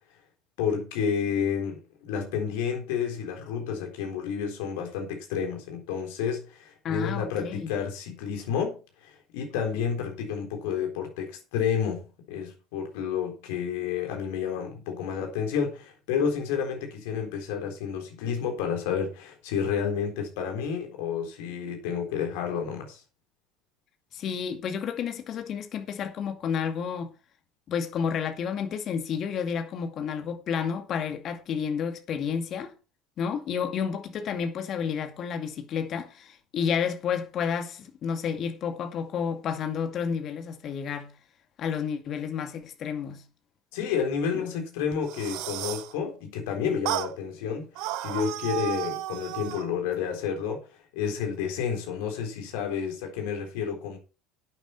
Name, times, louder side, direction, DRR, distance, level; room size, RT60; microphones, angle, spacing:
voice 1, 0.6-8.8 9.0-12.0 12.3-23.0 43.7-50.6 50.9-54.0, left 7 dB, 65° left, 3.8 m, -30 dB
voice 2, 6.8-7.7 24.1-27.1 27.7-32.7 33.2-41.1 41.6-43.2 44.3-44.4, left 7 dB, 45° left, 2.2 m, -31 dB
sound 1, 44.9-45.9 46.9-47.1 47.8-49.7, right 15 dB, 60° right, 0.8 m, -33 dB
11.5 x 9.0 x 4.4 m
figure-of-eight pair, 65°, 0 cm